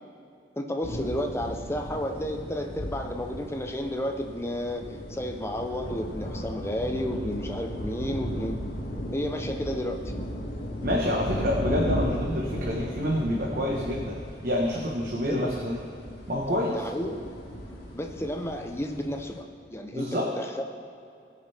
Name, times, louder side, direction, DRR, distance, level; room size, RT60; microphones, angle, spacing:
voice 1, 0.6-8.6 9.1-10.1 15.3-15.6 16.7-17.3 17.9-19.4 19.7-20.6, equal, 15° left, 4 dB, 0.8 m, -32 dB
sound 1, 0.8-19.4, equal, 55° left, 2.4 m, -36 dB
voice 2, 10.8-14.2 14.4-15.8 16.3-16.7 19.9-20.3, left 1 dB, 55° right, -3 dB, 1.3 m, -27 dB
20.5 x 6.8 x 3.5 m, 2.5 s
head